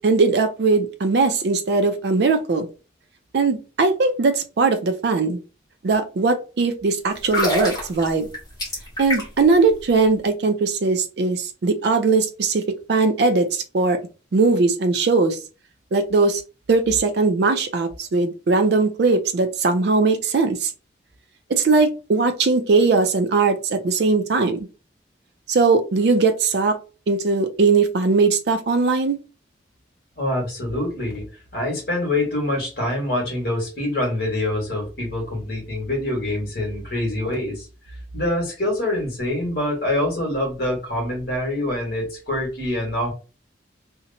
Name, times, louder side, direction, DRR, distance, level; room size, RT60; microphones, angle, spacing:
voice 1, 0.0-2.7 3.3-5.4 5.8-8.3 9.0-12.6 12.9-14.0 14.3-15.4 15.9-16.4 16.7-20.7 21.5-24.6 25.5-26.8 27.1-29.2, right 4 dB, 60° right, 7 dB, 0.4 m, -19 dB
sound 1, 7.2-9.5 9.8-10.0, left 1 dB, 20° left, 1.2 m, -26 dB
voice 2, 30.2-31.2 31.5-37.7 38.1-43.1, left 1 dB, 50° left, -1 dB, 1.3 m, -25 dB
2.8 x 2.1 x 2.6 m, 0.33 s
head